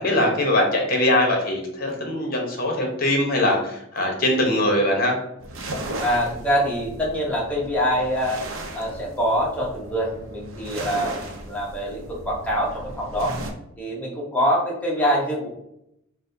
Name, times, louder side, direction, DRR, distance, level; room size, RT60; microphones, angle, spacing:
voice 1, 0.0-5.2, left 1 dB, 45° left, 1 dB, 0.8 m, -22 dB
sound 1, 5.4-13.5, right 1 dB, 75° right, 0.6 m, -36 dB
voice 2, 6.0-8.4 8.7-13.3 13.8-15.5, equal, 5° left, -4 dB, 0.8 m, -24 dB
4.1 x 2.1 x 2.6 m, 0.80 s
head